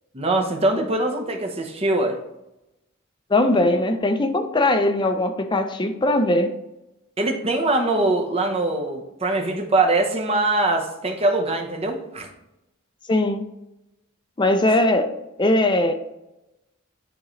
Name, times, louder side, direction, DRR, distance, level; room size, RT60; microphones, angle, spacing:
voice 1, 0.1-2.2 7.2-12.3, right 2 dB, 30° right, 3 dB, 0.9 m, -22 dB
voice 2, 3.3-6.5 13.1-13.5 14.4-15.1 15.4-15.9, left 1 dB, 20° left, 7 dB, 0.5 m, -20 dB
10.0 x 3.8 x 3.1 m, 0.92 s
head